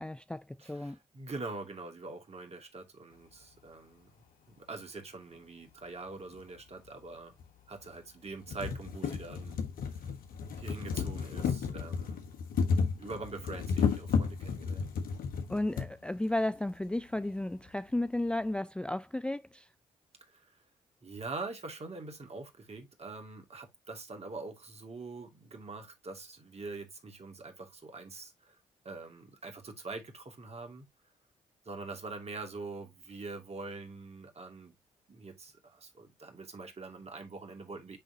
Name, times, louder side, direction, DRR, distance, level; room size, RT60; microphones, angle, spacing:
voice 1, 0.0-1.0 15.5-19.7, left 1 dB, 5° left, 0.4 m, -33 dB
voice 2, 0.6-4.1 4.5-7.3 7.7-10.1 10.6-12.3 13.0-14.9 20.2-20.6 21.0-28.6 28.8-30.9 31.6-34.8 35.1-38.0, right 3 dB, 45° right, 2.6 m, -44 dB
sound 1, 6.3-6.4 7.4-7.5 7.9-8.0 8.3-15.9 16.8-16.9 17.2-17.3, left 6 dB, 70° left, 1.4 m, -33 dB
9.9 x 3.9 x 2.8 m
hypercardioid pair, 45°, 15 cm